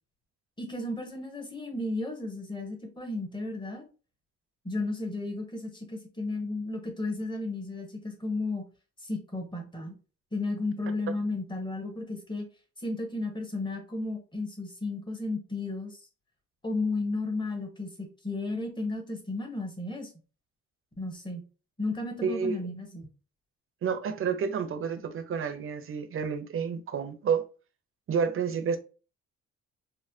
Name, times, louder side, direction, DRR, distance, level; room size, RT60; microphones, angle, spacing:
voice 1, 0.6-3.8 4.6-8.6 9.0-9.9 10.3-12.5 12.8-16.1 16.6-20.1 21.0-21.4 21.8-23.1, left 2 dB, 15° left, 1.0 m, -33 dB
voice 2, 22.2-22.6 23.8-27.4 28.1-28.8, right 6 dB, 45° right, 0.6 m, -29 dB
4.1 x 2.1 x 2.6 m
cardioid pair, 90°, 30 cm